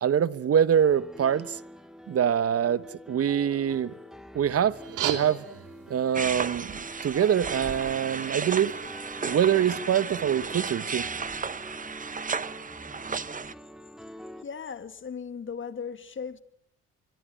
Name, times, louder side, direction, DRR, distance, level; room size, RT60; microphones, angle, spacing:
voice 1, 0.0-1.6 2.1-3.9 4.3-5.4 5.9-8.7 9.2-11.1, right 9 dB, 50° right, 1.1 m, -25 dB
Piano, 0.7-14.4, equal, ahead, 2.1 m, -46 dB
sound 1, 4.7-9.7, right 10 dB, 85° right, 3.4 m, -39 dB
sound 2, 6.1-13.5, right 5 dB, 25° right, 1.0 m, -34 dB
voice 2, 14.4-16.4, left 6 dB, 40° left, 2.2 m, -37 dB
25.0 x 24.0 x 9.1 m
cardioid pair, 90°, 30 cm